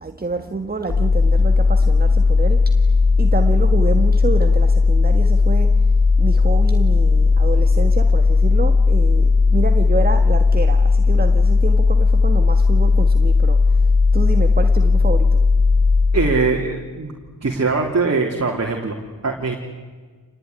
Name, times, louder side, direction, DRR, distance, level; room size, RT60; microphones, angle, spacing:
voice 1, 0.0-2.6 3.2-5.7 6.2-13.6 14.1-15.4, right 3 dB, 20° right, 7 dB, 1.8 m, -27 dB
sound 1, 0.9-16.7, left 4 dB, 55° left, 2.2 m, -15 dB
voice 2, 16.1-17.1 17.4-19.6, right 4 dB, 40° right, 1 dB, 3.6 m, -22 dB
28.0 x 20.0 x 9.9 m, 1.4 s
cardioid pair, 70°, 41 cm